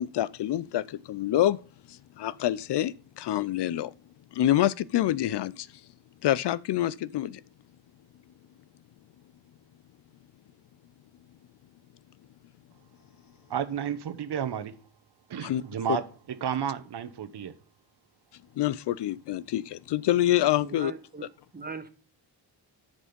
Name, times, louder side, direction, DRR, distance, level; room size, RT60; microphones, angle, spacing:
voice 1, 0.0-1.6 1.9-3.9 4.3-5.7 6.2-7.4 15.4-15.6 15.9-16.0 18.6-20.9, left 13 dB, 65° left, 0.6 m, -26 dB
voice 2, 13.5-14.7 15.3-17.5, right 9 dB, 60° right, 1.2 m, -32 dB
voice 3, 20.6-21.2 21.5-21.9, right 4 dB, 20° right, 1.5 m, -39 dB
10.5 x 5.3 x 5.2 m
cardioid pair, 60°, 45 cm